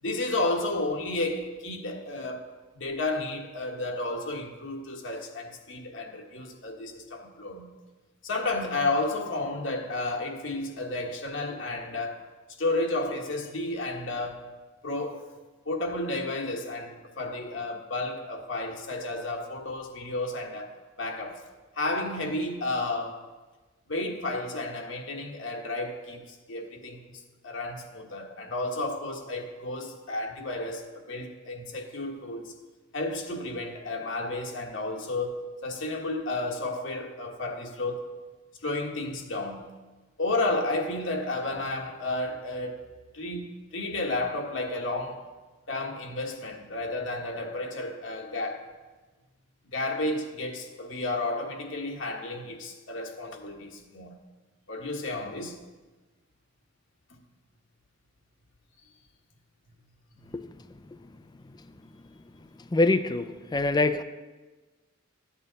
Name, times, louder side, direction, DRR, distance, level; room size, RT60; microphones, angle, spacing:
voice 1, 0.0-2.4 2.8-7.7 8.2-12.2 12.6-14.5 14.8-15.2 15.6-20.7 21.0-21.4 21.7-23.2 23.9-32.5 32.9-35.3 35.6-38.0 38.6-39.7 40.2-42.8 43.1-45.2 45.7-48.6 49.7-54.2 54.7-55.6, left 2 dB, 65° left, 2 dB, 1.3 m, -32 dB
voice 2, 62.7-63.2 63.5-64.0, left 2 dB, 20° left, 11 dB, 0.4 m, -23 dB
13.5 x 8.6 x 4.0 m, 1.3 s
head